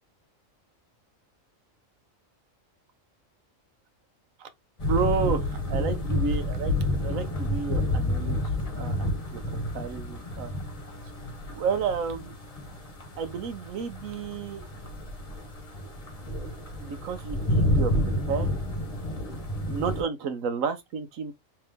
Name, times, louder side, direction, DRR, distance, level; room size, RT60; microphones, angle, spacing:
sound 1, 4.8-20.0, left 1 dB, 30° left, 1.0 m, -30 dB
voice 1, 4.9-8.4 8.8-9.4 9.7-10.5 11.5-12.3 13.2-14.7 16.8-17.9 18.3-18.5 19.7-21.3, right 6 dB, 80° right, 1.2 m, -31 dB
3.4 x 2.9 x 3.4 m
omnidirectional pair, 1.4 m